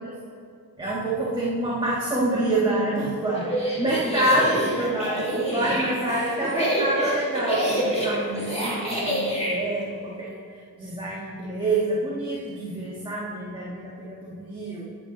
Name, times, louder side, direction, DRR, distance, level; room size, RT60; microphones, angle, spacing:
voice 1, 0.8-10.4 10.8-14.8, right 1 dB, 15° right, -7 dB, 1.5 m, -27 dB
sound 1, 3.4-9.6, equal, 15° left, 2.3 m, -27 dB
11.0 x 7.7 x 3.9 m, 2.5 s
wide cardioid pair, 125°, 37 cm